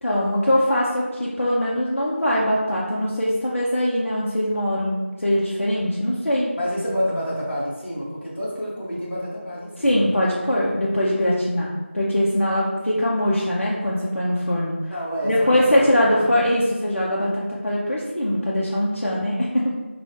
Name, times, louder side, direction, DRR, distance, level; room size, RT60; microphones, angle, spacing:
voice 1, 0.0-6.6 9.8-14.7 15.2-19.7, left 1 dB, 85° left, -6 dB, 0.6 m, -22 dB
voice 2, 6.5-10.0 14.9-16.3, equal, 55° left, -7 dB, 1.1 m, -28 dB
2.9 x 2.2 x 3.4 m, 1.3 s
figure-of-eight pair, 180°, 7 cm